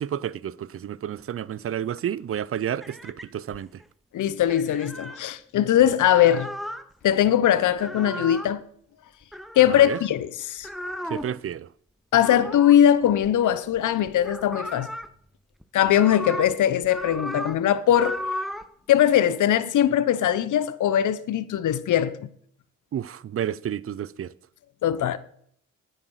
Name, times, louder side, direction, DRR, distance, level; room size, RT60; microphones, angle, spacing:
voice 1, 0.0-3.7 9.7-10.0 11.1-11.7 22.9-24.3, right 10 dB, 40° right, 0.6 m, -30 dB
sound 1, 2.8-3.8 4.5-5.2 5.8-6.8 7.7-8.5 9.3-10.1 10.6-11.4 12.2-13.8 14.1-15.1 15.6-16.5 16.8-17.6 17.9-18.7, equal, ahead, 0.9 m, -35 dB
voice 2, 4.1-6.5 7.0-8.6 9.6-10.7 12.1-14.9 15.7-18.2 18.9-22.2 24.8-25.2, left 10 dB, 60° left, 0.9 m, -21 dB
9.8 x 8.3 x 6.4 m
supercardioid pair, 55°, 34 cm